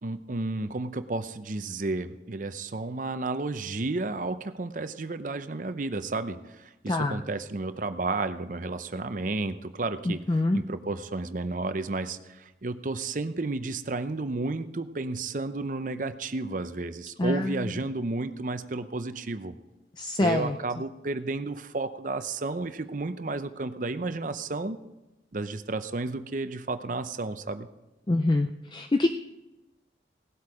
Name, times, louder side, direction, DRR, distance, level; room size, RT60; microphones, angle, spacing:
voice 1, 0.0-19.5 20.2-24.8 25.3-27.7, right 3 dB, 45° right, 10 dB, 0.7 m, -32 dB
voice 2, 6.9-7.2 10.1-10.6 17.2-17.6 20.0-20.5 28.1-29.1, left 2 dB, 25° left, 6 dB, 0.4 m, -25 dB
17.5 x 8.0 x 4.9 m, 1.0 s
head